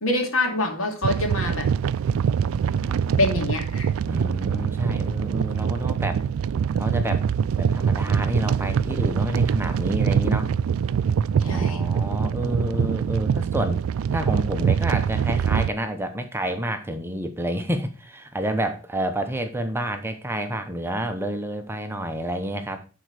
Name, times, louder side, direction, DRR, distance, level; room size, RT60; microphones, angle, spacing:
voice 1, 0.0-1.7 3.2-3.9 11.4-11.8, left 2 dB, 75° left, 2 dB, 2.7 m, -25 dB
sound 1, 1.0-15.7, right 7 dB, 75° right, 0.3 m, -24 dB
voice 2, 2.8-3.3 4.1-6.2 6.7-7.3 7.6-10.5 11.4-13.8 14.1-22.8, right 1 dB, 10° right, 7 dB, 0.9 m, -29 dB
11.0 x 4.6 x 4.9 m, 0.34 s
head